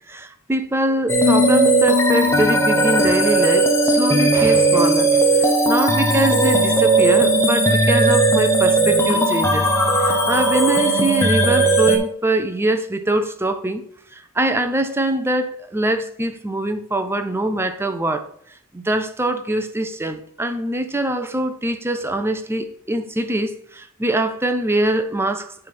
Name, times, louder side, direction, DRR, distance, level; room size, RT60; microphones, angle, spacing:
voice 1, 0.1-9.7 10.0-13.8 14.1-18.2 18.7-25.5, right 1 dB, 10° right, 0.5 m, -23 dB
sound 1, 1.1-12.0, right 2 dB, 10° left, 0.9 m, -17 dB
8.9 x 3.4 x 6.0 m
head